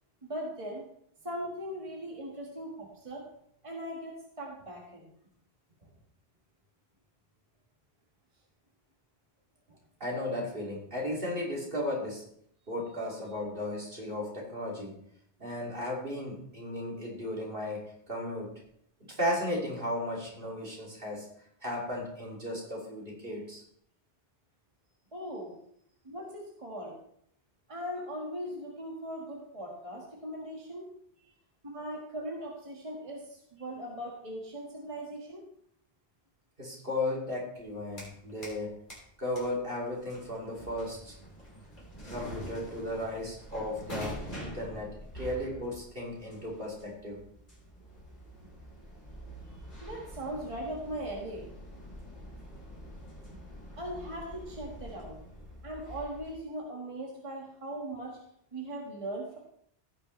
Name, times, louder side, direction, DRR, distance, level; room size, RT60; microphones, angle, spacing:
voice 1, 0.2-0.8 1.2-3.3 3.6-5.1 25.1-25.6 26.1-26.9 27.7-30.8 31.7-35.4 49.8-51.4 53.8-55.2 55.6-58.2 58.5-59.4, right 1 dB, 30° right, -2 dB, 1.7 m, -39 dB
voice 2, 10.0-12.2 12.7-14.9 15.4-18.5 19.2-21.3 21.6-23.6 36.6-38.7 39.2-41.1 42.1-47.2, left 1 dB, 60° right, -3 dB, 2.9 m, -35 dB
sound 1, 37.6-38.6 38.9-56.3, equal, 50° left, 3.4 m, -46 dB
16.5 x 6.8 x 3.2 m, 0.69 s
omnidirectional pair, 1.0 m